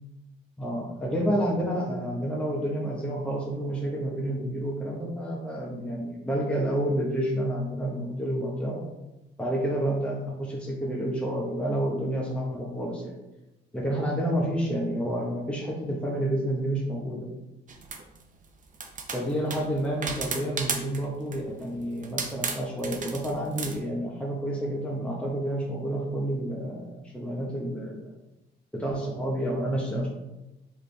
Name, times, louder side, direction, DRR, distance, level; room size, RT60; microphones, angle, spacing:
voice 1, 0.6-8.8 9.4-13.1 13.7-17.3 19.1-28.1 28.7-30.1, right 1 dB, 5° left, -3 dB, 1.0 m, -29 dB
sound 1, 17.7-18.2 18.7-21.1 21.3-21.6 22.0-23.8, right 5 dB, 40° right, 0.7 m, -33 dB
4.8 x 3.3 x 3.3 m, 0.99 s
cardioid pair, 90°, 20 cm